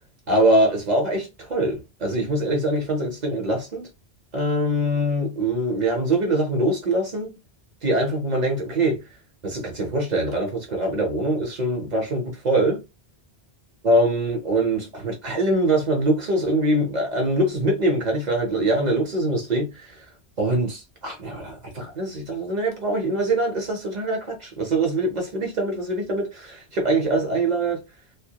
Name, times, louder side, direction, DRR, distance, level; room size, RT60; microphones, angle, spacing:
voice 1, 0.3-3.8 4.3-7.4 7.8-9.0 9.4-12.8 13.8-19.7 20.4-27.8, right 1 dB, 45° right, 0.8 m, -23 dB
2.2 x 2.0 x 2.8 m
omnidirectional pair, 1.1 m